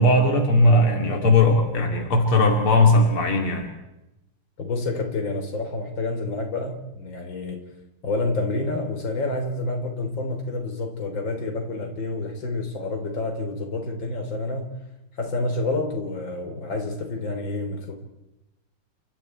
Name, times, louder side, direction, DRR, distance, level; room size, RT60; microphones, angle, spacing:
voice 1, 0.0-3.7, left 2 dB, 85° left, 3.5 m, -18 dB
voice 2, 4.6-7.6 8.0-14.7 15.2-18.0, left 2 dB, 60° left, 4.2 m, -28 dB
30.0 x 26.5 x 4.5 m
omnidirectional pair, 2.3 m